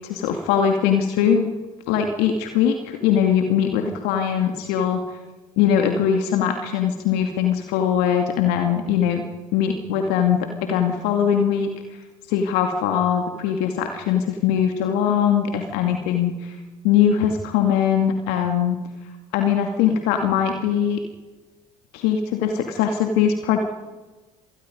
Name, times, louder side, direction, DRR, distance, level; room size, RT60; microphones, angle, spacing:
voice 1, 0.1-1.5 1.9-5.0 5.6-9.2 9.5-11.7 12.3-16.5 16.8-18.8 19.3-21.0 21.9-23.6, left 8 dB, 70° left, 4 dB, 2.3 m, -21 dB
27.0 x 19.5 x 5.3 m, 1.2 s
hypercardioid pair, 65°, 17 cm